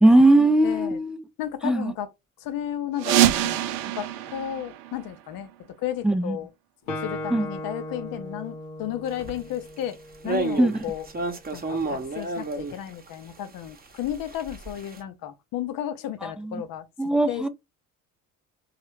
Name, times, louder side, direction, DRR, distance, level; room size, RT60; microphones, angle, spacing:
voice 1, 0.0-1.2 1.6-1.9 6.0-6.4 7.3-7.5 10.6-10.7 16.2-16.5 17.0-17.5, right 1 dB, ahead, 0.4 m, -19 dB
voice 2, 0.6-1.0 1.4-2.1 2.4-3.6 3.9-5.5 5.8-6.5 7.0-11.1 11.5-16.9 17.3-17.5, left 11 dB, 60° left, 0.7 m, -33 dB
sound 1, 3.0-5.6, right 12 dB, 80° right, 0.5 m, -25 dB
Guitar, 6.9-10.5, left 1 dB, 85° left, 0.9 m, -37 dB
sound 2, 9.2-9.4 9.8-9.9 10.2-13.1 13.8-15.0, right 3 dB, 25° right, 0.9 m, -31 dB
3.1 x 2.4 x 3.0 m
hypercardioid pair, 65°, 38 cm